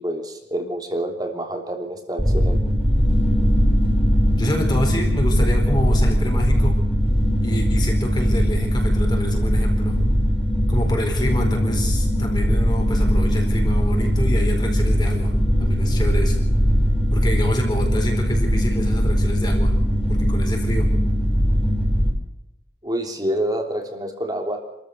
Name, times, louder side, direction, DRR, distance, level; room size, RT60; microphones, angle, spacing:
voice 1, 0.0-2.6 22.8-24.6, right 1 dB, 20° right, 3 dB, 3.2 m, -27 dB
sound 1, 2.2-22.1, equal, 5° right, 3.6 m, -20 dB
voice 2, 4.4-6.8 7.4-10.0 10.7-15.3 15.6-16.4 17.1-19.8 20.1-20.9, equal, 25° left, 2 dB, 4.4 m, -27 dB
28.0 x 14.0 x 6.8 m, 0.89 s
head